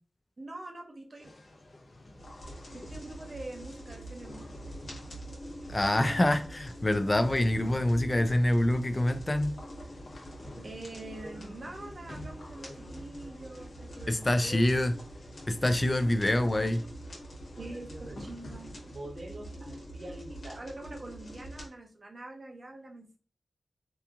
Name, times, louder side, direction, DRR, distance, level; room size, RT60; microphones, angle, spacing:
voice 1, 0.4-1.3 2.7-4.5 5.5-6.2 10.5-14.6 17.6-23.2, right 2 dB, 50° right, 0.7 m, -44 dB
sound 1, 1.2-19.0, left 2 dB, 65° left, 0.6 m, -51 dB
sound 2, 2.2-21.7, right 1 dB, 90° left, 1.2 m, -45 dB
voice 2, 5.7-9.6 14.1-14.9 15.5-16.8, left 1 dB, 30° left, 0.3 m, -26 dB
2.9 x 2.4 x 2.4 m
cardioid pair, 55°, 0 cm